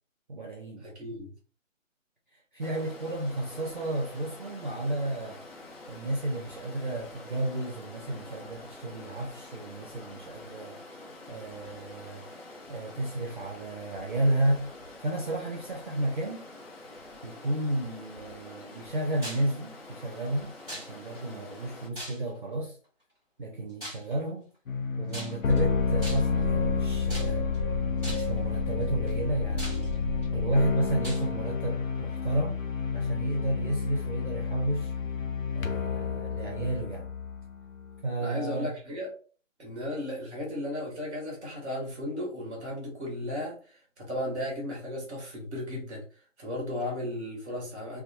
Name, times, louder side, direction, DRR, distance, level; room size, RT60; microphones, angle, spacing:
voice 1, 0.3-0.9 2.5-5.4 5.9-10.8 11.3-12.2 12.7-14.7 15.0-16.4 17.2-22.8 23.4-24.5 25.0-27.5 28.0-29.9 30.3-32.6 32.9-34.9 35.5-37.1 38.0-38.7, right 1 dB, 40° right, 0.4 m, -32 dB
voice 2, 0.8-1.3 38.2-39.1 39.6-46.0 46.4-48.0, left 1 dB, 5° right, 0.7 m, -35 dB
Stream, 2.6-21.9, left 2 dB, 50° left, 0.7 m, -47 dB
sound 1, 19.2-19.5 20.7-21.2 21.9-22.5 23.8-24.1 25.1-25.6 26.0-26.4 27.1-27.6 28.0-28.4 29.1-29.2 29.6-30.2 31.0-31.3, equal, 10° left, 1.0 m, -40 dB
sound 2, 24.7-38.0, left 5 dB, 85° left, 0.6 m, -30 dB
2.9 x 2.1 x 2.6 m
figure-of-eight pair, 155°, 39 cm